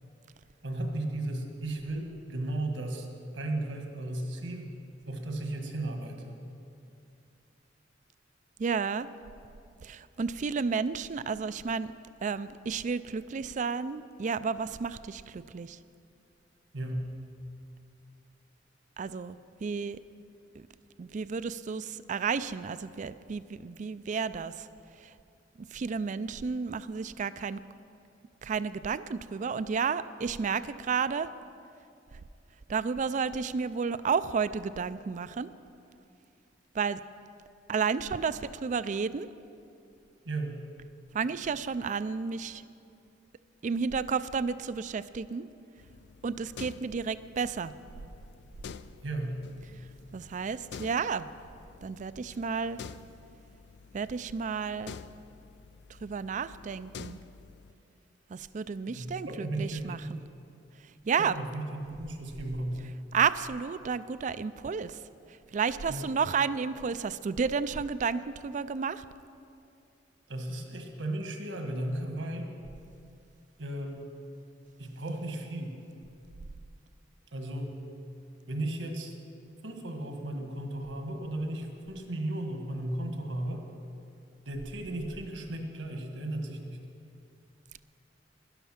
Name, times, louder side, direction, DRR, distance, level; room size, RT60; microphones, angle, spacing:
voice 1, 0.6-3.1 3.3-4.7 5.1-6.4 16.7-17.0 40.2-40.6 49.0-49.4 58.9-60.2 61.2-62.9 65.9-66.0 70.3-72.5 73.6-74.1 74.8-75.7 77.3-77.8 78.5-79.1 79.6-83.7 84.4-86.8, right 1 dB, 80° right, 3 dB, 1.6 m, -35 dB
voice 2, 8.6-9.1 9.8-11.9 12.2-15.8 19.0-20.0 21.0-24.7 25.7-27.6 28.4-31.3 32.7-35.5 36.7-37.0 37.7-39.3 41.1-42.6 43.6-45.5 46.2-47.7 50.1-51.3 51.8-52.8 53.9-55.0 56.0-57.2 58.3-60.2 61.1-61.3 63.1-65.0 65.5-69.0, right 5 dB, 40° right, 15 dB, 0.4 m, -31 dB
sound 1, 45.8-57.7, left 5 dB, 65° left, 0.4 m, -49 dB
12.5 x 11.0 x 5.8 m, 2.5 s
head